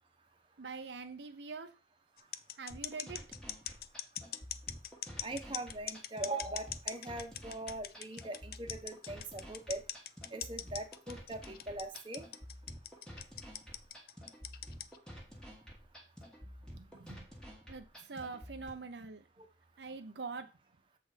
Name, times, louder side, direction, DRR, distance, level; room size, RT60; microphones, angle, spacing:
voice 1, 0.6-1.8 2.6-3.2 16.7-17.3 17.7-19.3 19.8-20.5, right 4 dB, 80° right, 0.8 m, -44 dB
sound 1, 2.2-15.0, left 11 dB, 55° left, 0.4 m, -41 dB
sound 2, 2.7-18.7, equal, 5° left, 1.6 m, -51 dB
voice 2, 5.2-9.8 10.3-12.3 19.4-19.5, right 2 dB, 30° right, 1.2 m, -41 dB
7.7 x 4.2 x 5.1 m
head